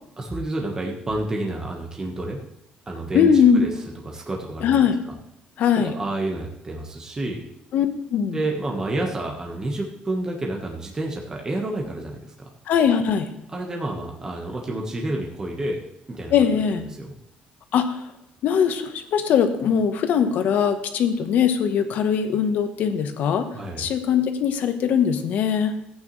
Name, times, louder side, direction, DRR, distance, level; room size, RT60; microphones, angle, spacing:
voice 1, 0.2-2.4 2.9-3.3 3.5-3.7 4.0-4.9 5.8-7.4 8.3-12.3 13.5-15.8 16.1-17.1 23.5-23.9, right 2 dB, 20° right, 0 dB, 1.4 m, -29 dB
voice 2, 3.1-3.6 4.6-5.0 5.6-6.0 7.7-8.4 12.7-13.3 16.3-16.9 17.7-18.0 18.4-23.5 23.8-25.7, left 7 dB, 65° left, 8 dB, 1.2 m, -21 dB
14.5 x 8.8 x 3.3 m, 0.81 s
cardioid pair, 135°, 3 cm